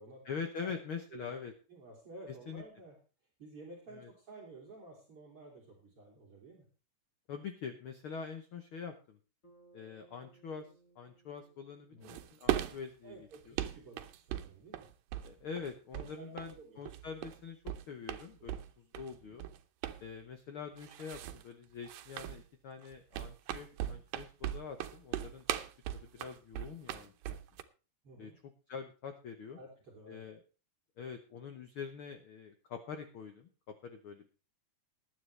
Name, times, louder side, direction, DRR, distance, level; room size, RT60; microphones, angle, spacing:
voice 1, 0.2-1.5 2.5-2.6 3.9-4.1 7.3-9.2 9.7-10.7 11.0-13.6 15.2-19.5 20.0-25.4 25.9-27.4 28.2-28.3 28.7-29.6 30.1-30.4 31.0-34.3, left 6 dB, 90° left, 7 dB, 1.1 m, -45 dB
voice 2, 1.7-3.0 3.4-6.7 11.9-12.2 13.0-14.9 15.9-16.8 18.4-18.6 28.0-28.4 29.6-30.3, right 2 dB, 45° right, -2 dB, 3.6 m, -52 dB
Bass guitar, 9.4-13.8, right 3 dB, 25° left, 3.4 m, -66 dB
sound 1, 12.0-12.8 13.3-15.3 15.6-16.1 16.4-17.4 17.7-18.7 18.9-19.6 19.8-20.0 20.8-21.4 21.8-22.4 22.8-27.6, right 12 dB, 90° right, 2.6 m, -38 dB
19.5 x 9.6 x 3.3 m, 0.34 s
omnidirectional pair, 3.9 m